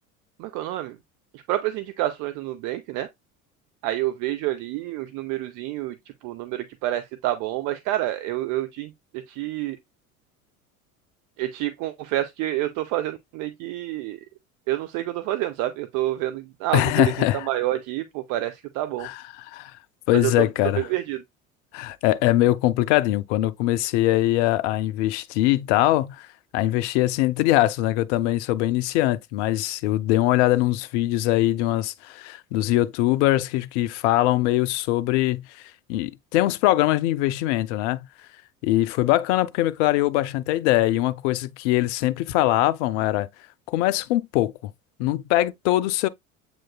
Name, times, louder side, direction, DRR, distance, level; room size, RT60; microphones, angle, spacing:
voice 1, 0.4-1.0 1.3-3.1 3.8-6.0 6.2-9.8 11.4-14.2 14.7-17.1 17.5-19.1 20.1-20.3 20.8-21.2, right 15 dB, 45° right, 0.6 m, -28 dB
voice 2, 16.7-17.5 19.0-19.7 20.1-20.9 21.7-26.3 26.5-35.6 35.9-38.1 38.6-43.3 43.7-44.7 45.0-46.1, left 15 dB, 55° left, 0.5 m, -22 dB
7.5 x 3.1 x 2.2 m
figure-of-eight pair, 65°, 42 cm